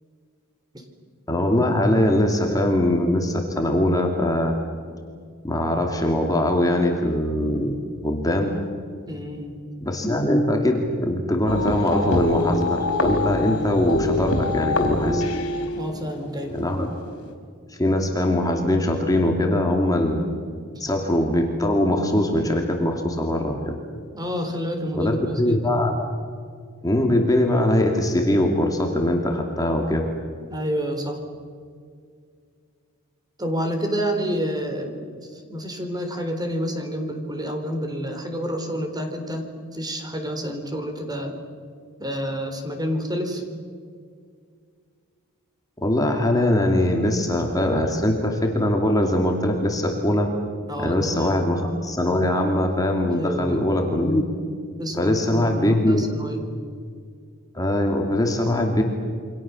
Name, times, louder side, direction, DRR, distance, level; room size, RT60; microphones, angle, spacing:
voice 1, 1.3-4.5 5.4-7.8 8.0-8.6 9.8-15.2 16.5-16.9 17.7-20.3 20.8-23.8 24.9-26.0 26.8-30.1 45.8-50.3 50.8-54.3 55.0-56.0 57.5-58.8, left 1 dB, 15° left, 2 dB, 2.7 m, -22 dB
voice 2, 9.1-9.6 15.7-16.6 20.7-20.8 24.1-25.6 30.5-31.2 33.4-41.3 42.0-43.4 50.7-51.3 53.1-53.6 54.8-56.4, equal, 20° right, 5 dB, 4.0 m, -29 dB
sound 1, 11.5-17.3, left 2 dB, 75° left, 4.4 m, -25 dB
29.0 x 25.5 x 7.2 m, 2.1 s
head